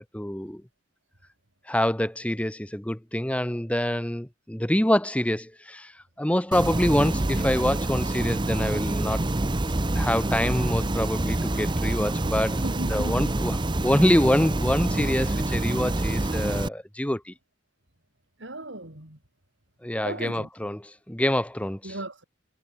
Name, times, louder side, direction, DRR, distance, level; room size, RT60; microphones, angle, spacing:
voice 1, 0.1-0.6 1.7-5.9 6.2-9.2 9.9-12.6 12.9-13.6 13.8-17.3 19.8-22.0, left 1 dB, 5° left, 1.2 m, -26 dB
sound 1, 6.5-16.7, right 1 dB, 25° right, 0.8 m, -26 dB
voice 2, 12.6-13.3 18.4-19.2 20.0-20.5 21.8-22.2, right 1 dB, 70° right, 4.9 m, -36 dB
head